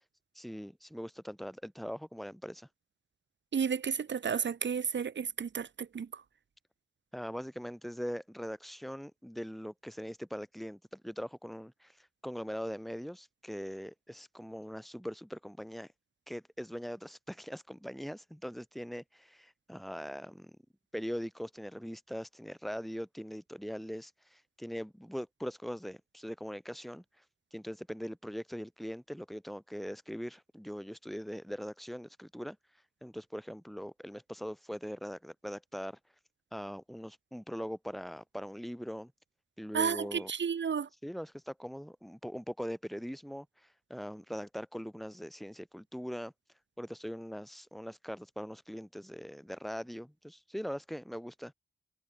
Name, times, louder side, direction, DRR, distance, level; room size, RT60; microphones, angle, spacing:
voice 1, 0.4-2.7 7.1-15.9 16.3-20.5 20.9-27.0 27.5-32.6 33.0-36.0 36.5-39.1 39.6-40.3 41.0-46.3 46.8-51.5, equal, ahead, 5.4 m, -41 dB
voice 2, 3.5-6.1 39.7-40.9, right 6 dB, 75° right, 2.7 m, -32 dB
cardioid pair, 75°, 19 cm